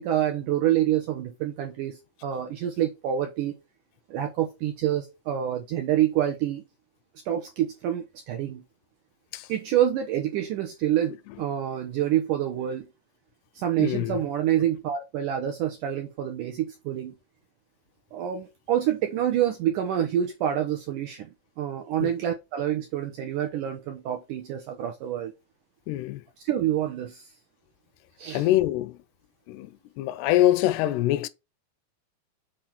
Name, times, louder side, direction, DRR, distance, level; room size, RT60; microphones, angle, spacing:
voice 1, 0.0-3.5 4.1-6.6 7.3-8.6 9.5-12.9 13.6-17.2 18.1-21.3 21.6-25.3 26.4-27.3 28.2-28.4, right 11 dB, 75° right, 1.9 m, -27 dB
voice 2, 13.8-14.2 22.0-22.1 25.9-26.2 28.3-29.0 29.5-31.3, left 14 dB, 85° left, 2.6 m, -24 dB
6.6 x 4.6 x 5.7 m
omnidirectional pair, 4.7 m